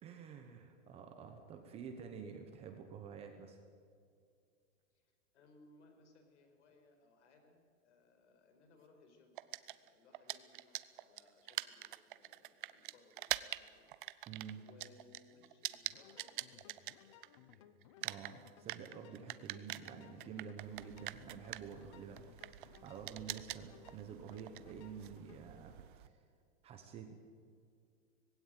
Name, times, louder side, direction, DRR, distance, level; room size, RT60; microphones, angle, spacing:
voice 1, 0.0-3.6 14.3-14.6 18.0-25.7 26.0-26.2 26.6-27.1, right 7 dB, 15° right, 5 dB, 1.0 m, -49 dB
voice 2, 4.9-9.4 9.6-13.9 14.2-17.7, left 3 dB, 60° left, 6 dB, 4.9 m, -66 dB
sound 1, 9.4-17.5 17.8-26.1, right 15 dB, 40° right, 0.6 m, -45 dB
sound 2, 15.8-25.4, left 10 dB, 25° left, 0.5 m, -62 dB
20.0 x 16.5 x 9.3 m, 2.3 s
supercardioid pair, 175°, 40 cm